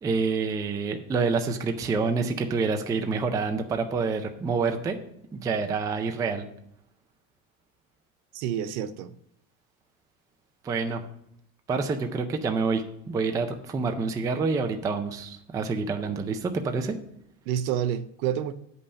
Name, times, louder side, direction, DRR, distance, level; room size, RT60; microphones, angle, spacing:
voice 1, 0.0-5.0 5.3-6.5 10.6-11.0 11.7-16.9, right 4 dB, 10° right, 0.3 m, -27 dB
voice 2, 8.3-9.1 17.5-18.5, right 9 dB, 80° right, 0.8 m, -28 dB
8.4 x 5.5 x 6.3 m
cardioid pair, 145°, 44 cm